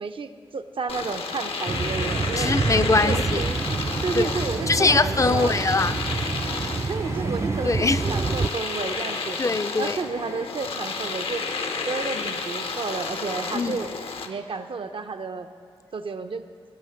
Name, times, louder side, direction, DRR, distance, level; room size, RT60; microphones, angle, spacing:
voice 1, 0.0-2.6 3.0-3.6 4.0-5.6 6.8-9.4 9.8-11.4 11.9-13.9 14.3-15.5 15.9-16.4, right 4 dB, 60° right, 0.7 m, -31 dB
Domestic sounds home sounds, 0.9-14.3, left 4 dB, 70° left, 0.8 m, -31 dB
sound 1, 1.7-8.5, right 4 dB, 30° right, 0.3 m, -27 dB
voice 2, 2.4-3.4 4.1-4.4 4.7-6.0 7.6-8.0 9.4-10.0 12.1-12.3 13.5-13.8, left 3 dB, 35° left, 0.5 m, -22 dB
16.0 x 5.8 x 5.7 m
cardioid pair, 45°, 10 cm